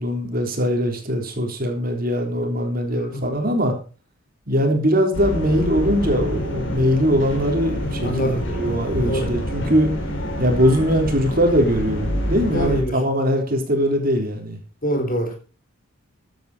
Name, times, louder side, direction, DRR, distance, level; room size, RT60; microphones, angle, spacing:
voice 1, 0.0-3.7 4.5-9.9 10.4-14.6, equal, 40° right, 4 dB, 3.7 m, -21 dB
voice 2, 2.8-3.3 8.0-8.5 9.0-9.3 12.5-13.0 14.8-15.4, equal, 40° left, 5 dB, 4.0 m, -25 dB
sound 1, 5.1-12.8, equal, 60° left, 4.1 m, -27 dB
14.5 x 9.3 x 5.0 m, 0.35 s
head